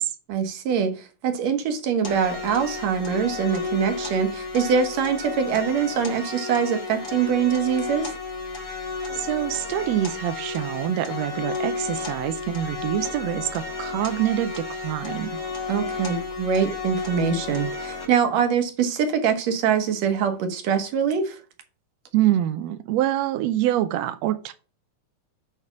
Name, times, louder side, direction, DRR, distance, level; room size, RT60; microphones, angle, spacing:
voice 1, 0.3-8.1 15.7-21.4, right 7 dB, 65° right, 2.1 m, -23 dB
sound 1, 2.0-18.1, left 4 dB, 40° left, 2.0 m, -32 dB
voice 2, 9.1-15.4 22.1-24.5, right 12 dB, 80° right, 1.5 m, -25 dB
8.2 x 3.4 x 5.8 m
omnidirectional pair, 3.6 m